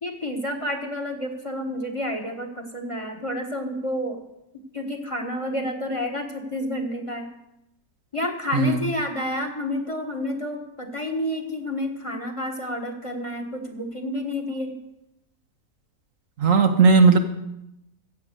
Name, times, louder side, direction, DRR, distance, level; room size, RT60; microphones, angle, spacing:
voice 1, 0.0-4.2 4.7-7.3 8.1-14.7, left 1 dB, 20° left, 4 dB, 1.4 m, -29 dB
voice 2, 16.4-17.2, right 4 dB, 60° right, 6 dB, 1.3 m, -16 dB
15.5 x 7.6 x 6.6 m, 0.87 s
omnidirectional pair, 1.6 m